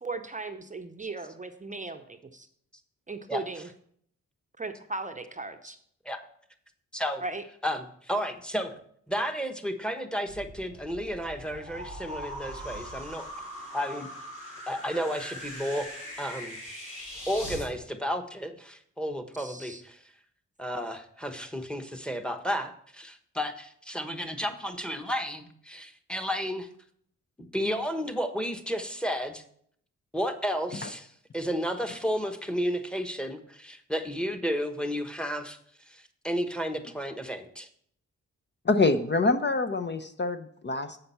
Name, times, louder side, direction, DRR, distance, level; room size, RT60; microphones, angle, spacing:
voice 1, 0.0-2.5 3.1-3.7 4.6-5.8 7.2-7.4 19.4-19.8, right 3 dB, 25° right, 7 dB, 0.7 m, -37 dB
voice 2, 6.9-7.2 7.6-8.8 9.1-13.3 13.7-14.1 14.7-15.9 16.2-16.6 17.3-20.0 20.6-26.7 27.4-29.4 30.1-31.1 31.3-35.6 35.9-37.7, equal, 5° left, 6 dB, 1.1 m, -32 dB
sound 1, 10.2-17.7, equal, 75° left, 4.2 m, -41 dB
voice 3, 38.7-41.0, left 3 dB, 35° left, 8 dB, 0.7 m, -26 dB
7.7 x 5.8 x 5.6 m, 0.64 s
cardioid pair, 60°, 31 cm